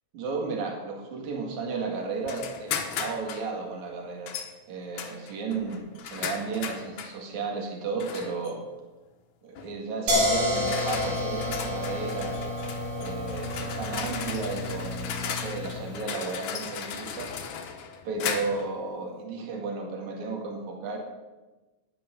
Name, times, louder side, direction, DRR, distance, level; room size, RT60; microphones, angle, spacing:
voice 1, 0.1-4.3 4.7-8.6 9.4-12.3 13.0-17.4 18.0-21.0, right 4 dB, 70° right, 1 dB, 3.4 m, -34 dB
sound 1, 2.3-3.5 4.3-4.5 5.0-7.2 8.0-8.5 9.6-9.8 10.4-18.7, left 7 dB, 80° left, 2.7 m, -36 dB
sound 2, 10.1-15.9, left 1 dB, 90° right, 4.7 m, -29 dB
12.0 x 10.0 x 6.9 m, 1.1 s
omnidirectional pair, 3.5 m